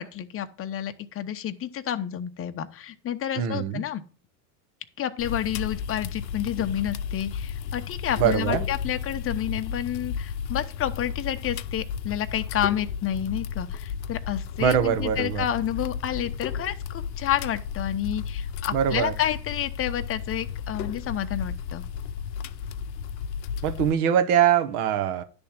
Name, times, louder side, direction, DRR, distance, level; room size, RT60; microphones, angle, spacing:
voice 1, 0.0-4.0 5.0-21.8, left 10 dB, 25° left, 0.8 m, -30 dB
voice 2, 3.4-3.8 8.2-8.7 14.6-15.4 18.7-19.1 23.6-25.2, right 9 dB, 60° right, 1.2 m, -23 dB
sound 1, 5.2-23.9, left 7 dB, 85° left, 0.6 m, -33 dB
10.5 x 3.5 x 7.2 m
hypercardioid pair, 100°, 50 cm